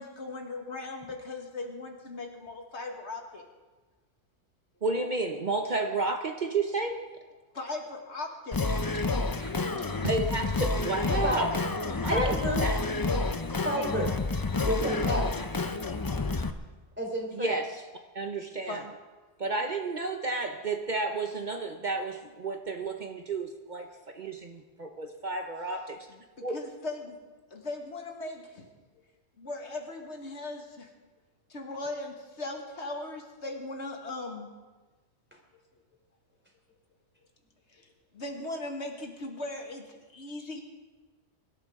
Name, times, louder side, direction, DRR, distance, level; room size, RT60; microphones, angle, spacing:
voice 1, 0.0-3.4 7.5-8.6 18.7-18.9 26.4-27.2 27.5-28.7 29.4-30.9 31.5-34.5 37.7-37.8 38.1-39.8 40.1-40.6, left 2 dB, 90° left, 2 dB, 2.0 m, -38 dB
voice 2, 4.8-7.0 8.9-9.0 9.4-9.5 9.9-11.5 12.0-12.8 17.3-17.8 18.1-18.8 19.4-23.9 24.1-26.0 26.4-26.6, right 3 dB, 45° right, 4 dB, 1.0 m, -31 dB
Singing, 8.5-16.5, left 3 dB, 25° left, 0.6 m, -29 dB
voice 3, 12.1-12.6 13.6-14.1 14.6-15.3 17.0-17.5, equal, 10° right, -1 dB, 3.4 m, -30 dB
23.5 x 12.5 x 3.7 m, 1.3 s
omnidirectional pair, 1.1 m